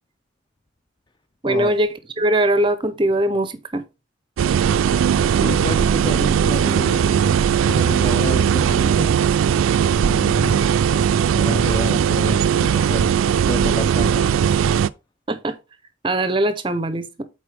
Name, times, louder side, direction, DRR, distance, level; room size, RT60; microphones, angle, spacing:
voice 1, 1.4-1.9 2.2-3.8 15.3-15.6 16.0-17.2, right 1 dB, 25° right, 0.6 m, -21 dB
sound 1, 4.4-14.9, right 8 dB, 85° right, 0.3 m, -18 dB
voice 2, 5.3-7.4 7.7-9.1 10.0-10.7 11.3-13.2 13.5-14.3, left 2 dB, 25° left, 0.4 m, -29 dB
7.9 x 4.4 x 3.3 m
head